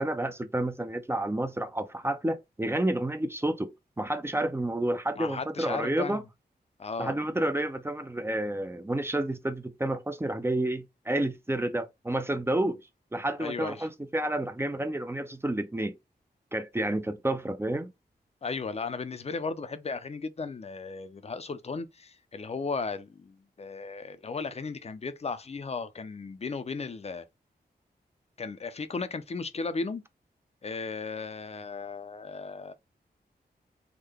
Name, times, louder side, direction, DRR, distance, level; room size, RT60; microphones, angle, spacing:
voice 1, 0.0-3.7 4.0-6.2 7.0-12.8 13.1-15.9 16.5-17.9, right 1 dB, 15° right, 0.4 m, -30 dB
voice 2, 5.2-6.2 6.8-7.1 13.4-13.9 18.4-27.2 28.4-30.0 30.6-32.7, left 4 dB, 40° left, 0.5 m, -35 dB
3.6 x 2.1 x 3.4 m
wide cardioid pair, 80°, 17 cm